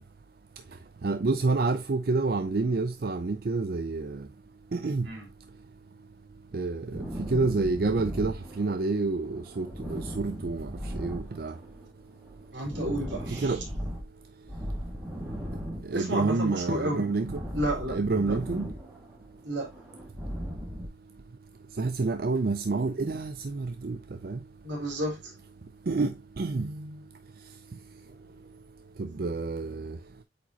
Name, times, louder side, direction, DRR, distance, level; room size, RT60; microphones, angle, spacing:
voice 1, 1.0-4.2 4.7-5.1 6.5-11.5 13.3-13.6 15.8-17.4 17.9-18.7 21.8-24.0 24.2-24.4 25.9-27.0 29.0-30.0, right 3 dB, 55° right, 0.5 m, -28 dB
sound 1, 6.9-9.0 9.3-11.9 12.1-14.1 14.4-16.4 16.6-19.2 19.5-20.9, equal, 10° right, 1.9 m, -38 dB
voice 2, 12.5-13.6 15.9-17.1 17.5-17.9 18.2-18.4 19.4-19.7 24.6-25.3 28.1-28.2, right 1 dB, 80° right, 3.3 m, -32 dB
8.2 x 4.7 x 2.8 m
head